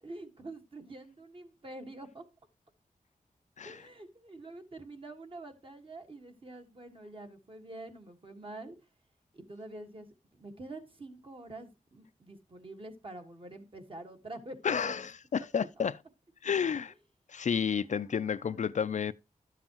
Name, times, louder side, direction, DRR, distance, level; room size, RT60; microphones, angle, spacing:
voice 1, 0.0-2.2 3.6-8.8 9.3-10.1 10.3-15.1 15.5-15.9 17.6-18.8, right 2 dB, 40° right, 1.4 m, -47 dB
voice 2, 14.6-16.0 16.4-16.9 17.3-19.1, left 7 dB, 60° left, 0.4 m, -31 dB
11.5 x 7.4 x 2.9 m
wide cardioid pair, 120°, 14 cm